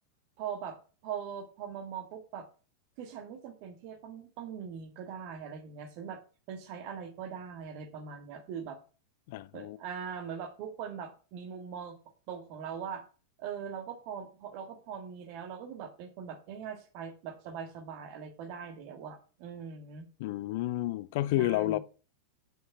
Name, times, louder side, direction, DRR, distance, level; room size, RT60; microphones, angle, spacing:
voice 1, 0.4-2.5 3.0-6.2 6.5-8.8 9.5-12.0 12.3-13.1 13.4-20.1 21.4-21.8, right 7 dB, 45° right, 1.8 m, -41 dB
voice 2, 9.3-9.8 20.2-21.8, left 15 dB, 50° left, 0.4 m, -30 dB
7.2 x 5.7 x 6.0 m
figure-of-eight pair, 90°, 0 cm